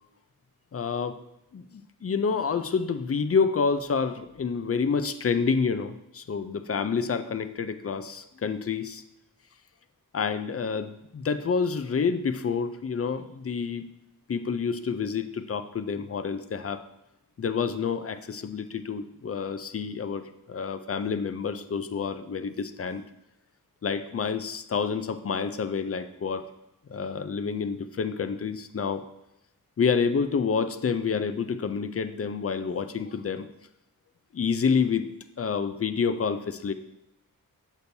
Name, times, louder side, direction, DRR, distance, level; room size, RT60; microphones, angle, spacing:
voice 1, 0.7-1.2 1.5-9.0 10.1-13.8 14.3-16.8 17.4-23.0 23.8-26.5 26.9-29.0 29.8-33.5 34.3-35.1 35.4-36.7, left 5 dB, 40° left, 10 dB, 0.5 m, -28 dB
6.9 x 6.1 x 2.7 m, 0.87 s
wide cardioid pair, 100°, 36 cm